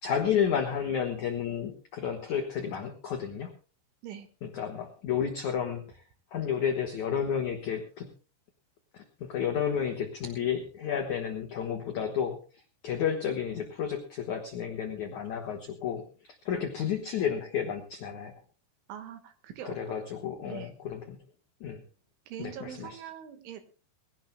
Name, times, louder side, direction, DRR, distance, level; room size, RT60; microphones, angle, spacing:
voice 1, 0.0-3.5 4.4-5.8 6.3-8.1 8.9-12.4 12.8-18.3 19.6-21.2 21.6-21.8 22.4-23.0, left 8 dB, 85° left, 3 dB, 1.6 m, -31 dB
voice 2, 18.9-19.8 20.5-20.7 22.3-23.6, right 10 dB, 75° right, 9 dB, 3.9 m, -43 dB
22.0 x 16.5 x 2.2 m, 0.35 s
omnidirectional pair, 5.7 m